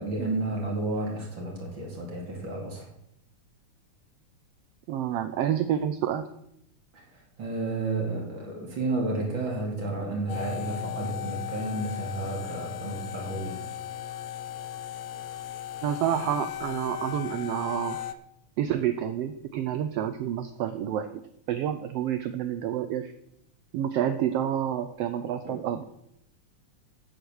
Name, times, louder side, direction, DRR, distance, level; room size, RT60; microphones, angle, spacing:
voice 1, 0.0-2.9 6.9-7.0 7.4-13.6 25.4-25.5, right 2 dB, 40° right, -1 dB, 2.8 m, -31 dB
voice 2, 4.9-6.3 15.8-18.0 18.6-21.1 21.5-23.1 23.7-25.8, right 10 dB, 85° right, 9 dB, 1.4 m, -29 dB
sound 1, 10.3-18.1, left 11 dB, 75° left, 1.5 m, -36 dB
8.9 x 8.0 x 6.3 m, 0.76 s
omnidirectional pair, 3.4 m